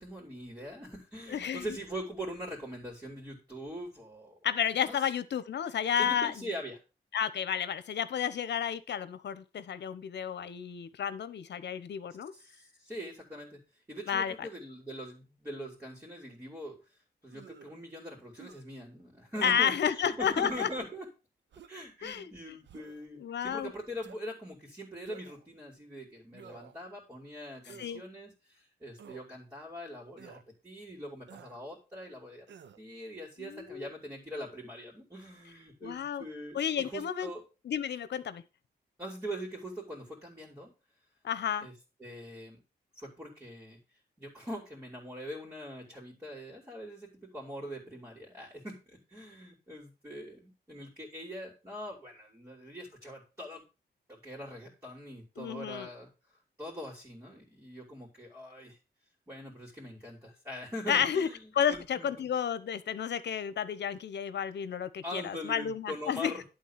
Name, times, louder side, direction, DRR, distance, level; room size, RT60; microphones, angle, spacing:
voice 1, 0.0-4.4 4.9-5.0 6.0-6.8 12.3-13.6 13.9-16.8 17.2-21.1 21.7-32.5 32.8-37.4 39.0-40.7 41.6-41.7 42.0-42.6 42.9-43.8 44.2-53.6 54.1-56.1 56.6-58.8 59.3-62.3 65.0-66.4, equal, 15° right, -5 dB, 3.4 m, -42 dB
voice 2, 1.3-1.6 4.4-6.3 7.1-12.3 14.1-14.5 19.4-20.7 22.0-22.3 23.2-23.7 27.8-28.0 33.4-33.9 35.8-36.2 36.5-37.3 37.6-38.4 41.2-41.7 55.4-55.9 60.9-61.3 61.5-66.3, left 8 dB, 70° left, 14 dB, 1.0 m, -31 dB
sound 1, 17.3-17.8 18.4-18.6 19.3-19.6 20.4-20.9 21.5-21.9 22.6-23.1 24.0-24.2 25.1-25.5 26.3-26.8 27.7-28.0 29.0-29.3 30.2-30.4 31.3-31.6 32.5-32.8, right 7 dB, 80° right, 0.9 m, -51 dB
11.5 x 3.9 x 7.4 m, 0.30 s
wide cardioid pair, 145°, 18 cm